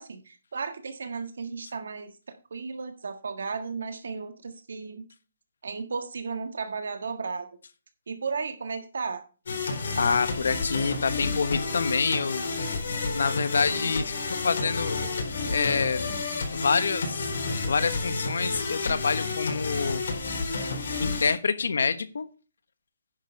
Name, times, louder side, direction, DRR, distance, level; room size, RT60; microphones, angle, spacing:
voice 1, 0.0-5.1 5.6-7.5 8.1-9.2, right 5 dB, 80° right, 8 dB, 1.6 m, -34 dB
sound 1, 9.5-21.3, left 3 dB, 65° left, 4.0 m, -30 dB
voice 2, 9.9-12.5 13.1-15.2 15.5-16.0 16.5-17.3 17.7-20.0 21.0-22.3, left 5 dB, 85° left, 13 dB, 1.1 m, -27 dB
10.5 x 6.5 x 5.2 m, 0.34 s
hypercardioid pair, 180°, 0 cm